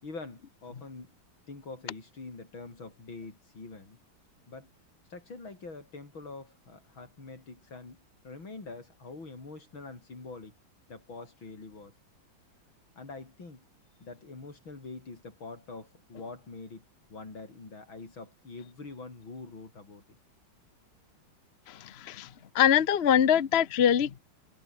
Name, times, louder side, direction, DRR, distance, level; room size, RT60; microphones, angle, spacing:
voice 1, 0.0-1.1 1.5-4.0 4.5-4.7 5.1-10.5 10.9-11.9 13.0-13.6 14.0-20.2, left 3 dB, 85° left, 6.0 m, -45 dB
voice 2, 21.7-22.3 22.5-24.2, left 9 dB, 40° left, 1.0 m, -24 dB
omnidirectional pair, 2.1 m